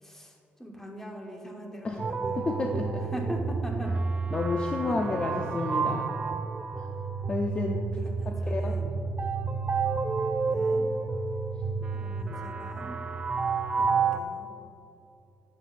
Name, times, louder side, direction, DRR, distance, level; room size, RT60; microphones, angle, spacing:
voice 1, 0.0-2.8 3.1-4.2 4.9-5.0 8.0-8.9 10.5-10.9 11.9-13.0 13.8-14.5, equal, 10° left, 0 dB, 1.1 m, -41 dB
sound 1, 2.0-14.2, right 4 dB, 30° right, 0.3 m, -30 dB
voice 2, 2.4-3.0 4.3-6.1 6.8-6.9 7.3-7.8 8.3-8.8, left 3 dB, 25° left, 2 dB, 0.5 m, -30 dB
11.0 x 7.6 x 2.5 m, 2.7 s
cardioid pair, 130°, 4 cm